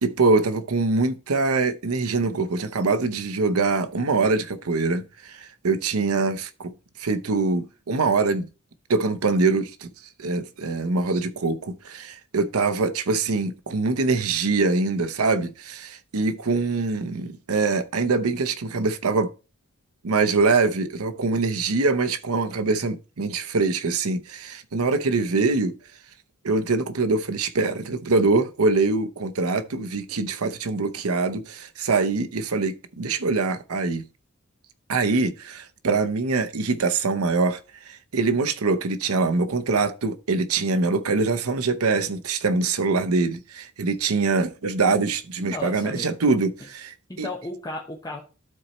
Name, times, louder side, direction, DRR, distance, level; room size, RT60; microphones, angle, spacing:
voice 1, 0.0-6.7 7.0-8.5 8.9-9.9 10.2-19.3 20.0-25.7 26.4-34.1 34.9-37.6 37.8-47.3, right 3 dB, 75° right, 0.8 m, -24 dB
voice 2, 45.4-46.2 47.1-48.2, left 2 dB, 20° left, 1.0 m, -34 dB
12.5 x 4.2 x 3.0 m
head